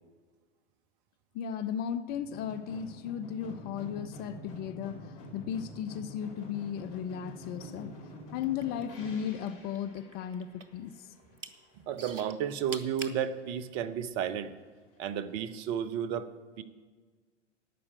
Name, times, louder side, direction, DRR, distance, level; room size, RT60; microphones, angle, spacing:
voice 1, 1.3-7.9 8.3-11.1, left 8 dB, 25° left, 0.5 m, -36 dB
sound 1, 2.1-12.1 12.4-13.2 13.5-13.6, equal, 45° left, 5.3 m, -47 dB
sound 2, 8.3-9.5 9.8-10.8 11.2-11.5 12.0-13.2 13.9-14.0, right 4 dB, 85° right, 1.2 m, -43 dB
voice 2, 11.9-14.5 15.0-16.3 16.6-16.7, right 8 dB, 40° right, 0.9 m, -32 dB
12.0 x 8.6 x 9.0 m
figure-of-eight pair, 105°, 36 cm